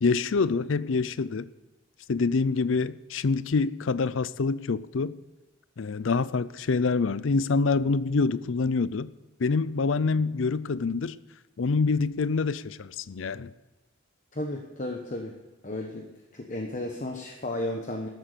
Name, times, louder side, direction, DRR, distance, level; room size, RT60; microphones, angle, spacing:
voice 1, 0.0-1.5 2.1-5.1 5.8-9.1 9.4-11.2 11.6-13.5, left 4 dB, 70° left, 0.5 m, -26 dB
voice 2, 14.3-15.3 15.6-16.1 16.3-18.1, left 1 dB, 40° left, 1.1 m, -33 dB
13.0 x 9.0 x 6.7 m
head